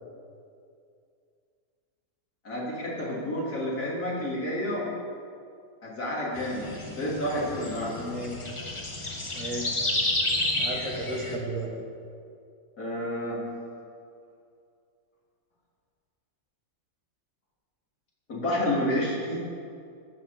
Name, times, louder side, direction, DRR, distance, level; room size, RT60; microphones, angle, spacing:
voice 1, 2.4-4.9 5.8-6.7 7.0-8.1 12.8-13.4 18.3-19.4, left 1 dB, 80° left, -5 dB, 3.5 m, -29 dB
sound 1, 6.4-11.4, left 2 dB, 20° left, 1.1 m, -31 dB
voice 2, 7.9-8.4 9.3-9.8 10.5-11.7, right 1 dB, 55° right, 0 dB, 2.0 m, -34 dB
15.0 x 6.6 x 7.0 m, 2.4 s
omnidirectional pair, 1.6 m